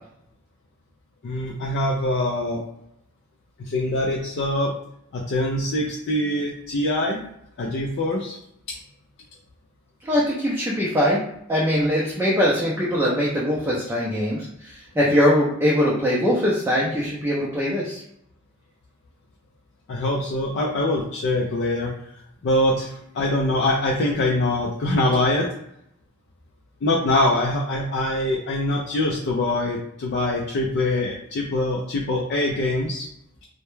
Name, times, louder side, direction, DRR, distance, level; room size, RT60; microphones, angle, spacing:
voice 1, 1.2-2.6 3.6-4.7 5.1-7.2 7.6-8.4 8.7-8.8 19.9-21.9 22.4-25.5 26.8-33.1, left 1 dB, 55° left, -1 dB, 0.4 m, -23 dB
voice 2, 10.0-11.2 11.5-18.0, equal, 10° right, -5 dB, 0.4 m, -22 dB
2.2 x 2.1 x 3.0 m, 0.76 s
head